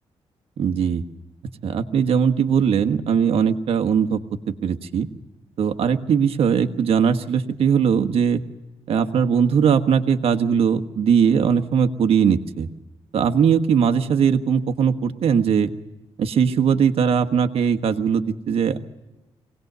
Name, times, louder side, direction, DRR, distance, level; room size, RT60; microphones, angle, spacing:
voice 1, 0.6-1.0 1.6-4.2 4.5-5.1 5.6-8.4 8.9-12.7 13.1-15.7 16.2-18.8, right 7 dB, 65° right, 8 dB, 1.4 m, -20 dB
24.0 x 18.5 x 6.8 m, 1.0 s
cardioid pair, 135°, 11 cm